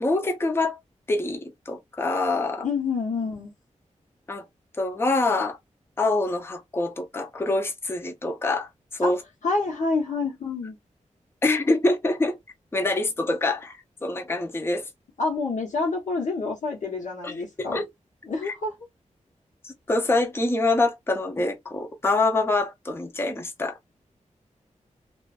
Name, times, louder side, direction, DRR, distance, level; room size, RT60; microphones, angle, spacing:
voice 1, 0.0-0.8 1.1-2.7 4.3-4.4 4.8-5.6 6.0-9.2 11.4-12.4 12.7-14.9 17.2-17.4 17.7-17.9 18.4-18.5 19.6-23.8, left 2 dB, 20° left, 0.5 m, -25 dB
voice 2, 2.6-3.5 9.0-9.1 9.4-10.8 15.2-17.8 18.2-18.7, left 3 dB, 70° left, 0.8 m, -27 dB
2.5 x 2.2 x 2.2 m
wide cardioid pair, 135°, 13 cm